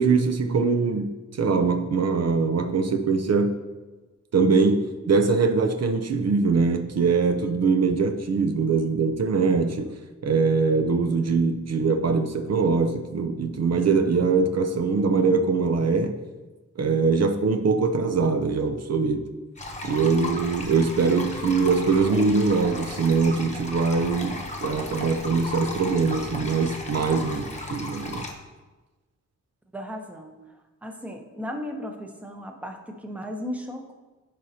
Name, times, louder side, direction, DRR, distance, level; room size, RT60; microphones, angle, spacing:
voice 1, 0.0-3.6 4.3-16.2 16.8-19.3 19.8-28.3, right 4 dB, 60° right, 6 dB, 0.6 m, -22 dB
sound 1, 19.6-28.3, left 2 dB, 25° left, 1.0 m, -35 dB
voice 2, 29.7-30.4 30.8-33.9, equal, 5° right, 3 dB, 0.8 m, -35 dB
14.0 x 5.0 x 2.8 m, 1.2 s
wide cardioid pair, 145°, 30 cm